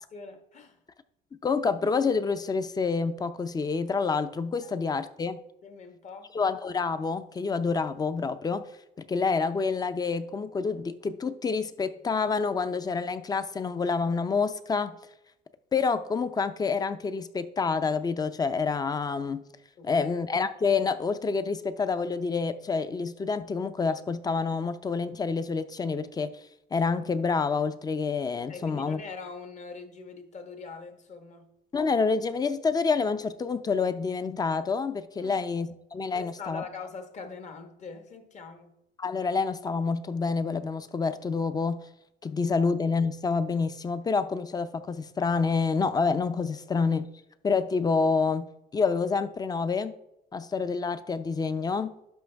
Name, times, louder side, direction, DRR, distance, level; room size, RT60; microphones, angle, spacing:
voice 1, 0.1-0.8 4.6-4.7 5.6-6.4 19.8-20.1 28.5-31.5 35.2-35.5 36.1-38.7 42.5-42.7, left 4 dB, 45° left, 1.4 m, -43 dB
voice 2, 1.4-5.4 6.3-8.6 9.0-15.0 15.7-19.4 19.8-26.3 26.7-29.0 31.7-36.6 39.0-41.8 42.2-47.1 47.4-48.5 48.7-49.9 50.3-51.9, left 4 dB, 25° left, 0.5 m, -28 dB
11.5 x 5.4 x 3.4 m
cardioid pair, 110°, 17 cm